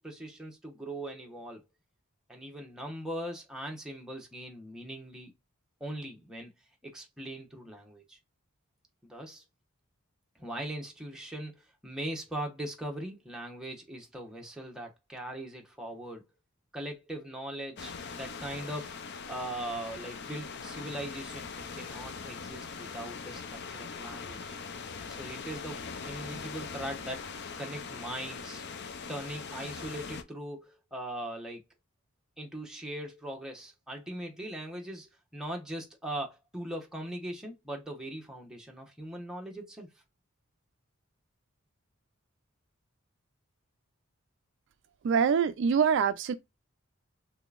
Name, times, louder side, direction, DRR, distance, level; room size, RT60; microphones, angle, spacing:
voice 1, 0.0-1.6 2.3-5.3 5.8-6.5 6.8-8.2 9.0-9.4 10.4-16.2 16.7-24.6 25.1-28.6 29.1-31.6 32.4-40.0, right 1 dB, 5° right, 0.9 m, -40 dB
sound 1, 17.8-30.2, left 5 dB, 50° left, 0.5 m, -41 dB
voice 2, 45.0-46.3, right 6 dB, 55° right, 0.3 m, -24 dB
3.6 x 3.4 x 2.4 m
head